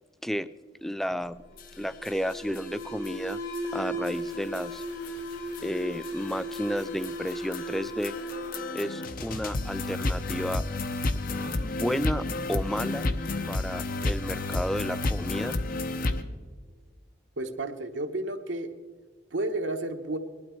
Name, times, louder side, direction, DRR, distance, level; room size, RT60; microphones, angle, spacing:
voice 1, 0.8-1.4 1.8-3.4 3.7-4.8 5.6-8.1 8.7-10.6 11.6-13.1 13.5-15.6, equal, ahead, 15 dB, 0.3 m, -32 dB
Alarm, 1.1-9.7, equal, 70° left, 2.8 m, -37 dB
sound 1, 1.6-1.7 2.1-2.2 2.6-2.7 3.1-3.2 3.6-3.7 4.1-4.2 4.5-16.2, left 2 dB, 50° left, 0.8 m, -31 dB
voice 2, 17.4-18.7 19.3-20.2, right 2 dB, 80° right, 6 dB, 1.1 m, -31 dB
19.5 x 12.0 x 4.5 m, 1.4 s
head